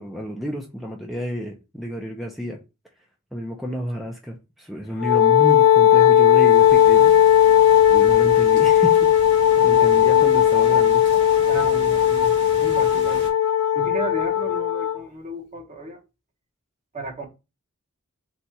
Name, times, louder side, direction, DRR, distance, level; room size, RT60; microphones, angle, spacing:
voice 1, 0.0-2.6 3.3-7.6 7.9-9.1 9.6-11.0, equal, ahead, 0.6 m, -31 dB
Wind instrument woodwind instrument, 5.0-15.0, left 10 dB, 85° left, 0.4 m, -16 dB
sound 1, 6.3-13.3, right 2 dB, 55° right, 1.8 m, -40 dB
voice 2, 9.5-10.2 11.5-12.3 12.6-13.3 13.7-16.0 16.9-17.3, right 2 dB, 30° right, 1.2 m, -33 dB
4.1 x 2.5 x 4.4 m
head